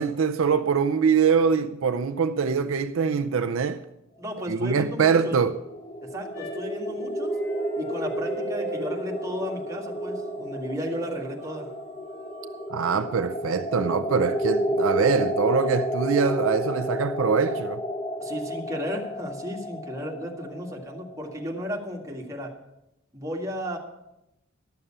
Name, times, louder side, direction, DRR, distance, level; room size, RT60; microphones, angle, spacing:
voice 1, 0.0-3.8 4.5-5.6 12.7-17.8, right 6 dB, 65° right, 0.5 m, -23 dB
voice 2, 4.2-5.4 6.1-7.4 7.8-11.7 18.2-22.5 23.1-23.8, equal, 15° right, 2.0 m, -34 dB
sound 1, 5.3-21.9, equal, 25° left, 0.9 m, -31 dB
sound 2, 6.3-10.7 11.4-12.7, right 1 dB, 70° left, 3.9 m, -41 dB
12.5 x 6.6 x 8.7 m
head